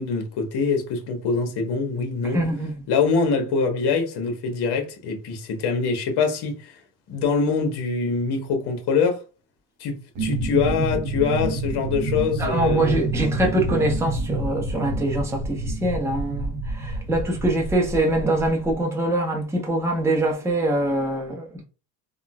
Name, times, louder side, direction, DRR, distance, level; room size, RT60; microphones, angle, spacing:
voice 1, 0.0-2.4 2.9-6.8 7.1-9.2 9.8-13.0, left 5 dB, 50° left, 1.2 m, -24 dB
voice 2, 2.3-2.7 12.4-21.6, right 1 dB, 5° right, 0.8 m, -24 dB
sound 1, 10.2-18.7, right 1 dB, 40° right, 0.8 m, -28 dB
3.6 x 2.3 x 2.2 m
supercardioid pair, 105°, 50 cm